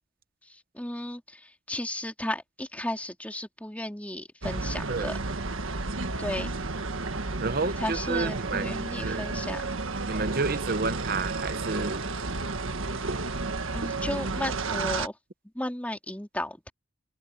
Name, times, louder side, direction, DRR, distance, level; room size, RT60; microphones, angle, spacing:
voice 1, 0.4-5.2 6.2-6.5 7.8-9.6 13.7-15.2 15.5-16.7, left 1 dB, 5° left, 3.0 m, -34 dB
sound 1, 4.4-15.1, right 3 dB, 80° right, 1.6 m, -32 dB
voice 2, 7.4-8.7 9.0-9.2 10.1-12.0, right 3 dB, 45° right, 0.9 m, -30 dB
head